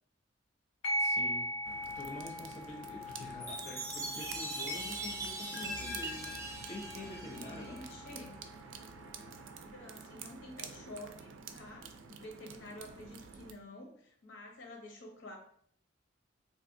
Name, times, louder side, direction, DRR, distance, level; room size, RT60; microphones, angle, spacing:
sound 1, 0.8-9.8, equal, 90° left, 1.1 m, -41 dB
voice 1, 1.0-1.5 1.9-7.9, left 1 dB, 35° left, -1 dB, 0.5 m, -47 dB
sound 2, 1.6-13.5, right 5 dB, 70° right, 0.3 m, -49 dB
Chime, 3.4-8.0, right 1 dB, 15° right, 0.6 m, -41 dB
voice 2, 6.7-8.4 9.7-15.4, left 1 dB, 70° left, 1 dB, 0.7 m, -50 dB
3.3 x 2.6 x 2.6 m, 0.65 s
head